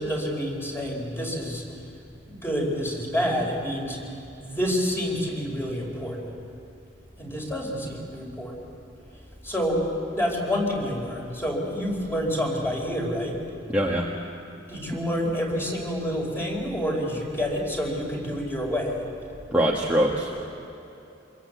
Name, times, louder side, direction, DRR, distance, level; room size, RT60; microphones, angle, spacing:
voice 1, 0.0-1.6 2.3-4.1 4.4-6.3 7.2-8.7 9.4-9.8 10.1-13.4 14.7-19.0, equal, 15° left, -1 dB, 4.7 m, -28 dB
voice 2, 13.7-14.1 19.5-20.4, right 1 dB, 10° right, -4 dB, 1.7 m, -23 dB
26.0 x 22.0 x 8.2 m, 2.8 s
head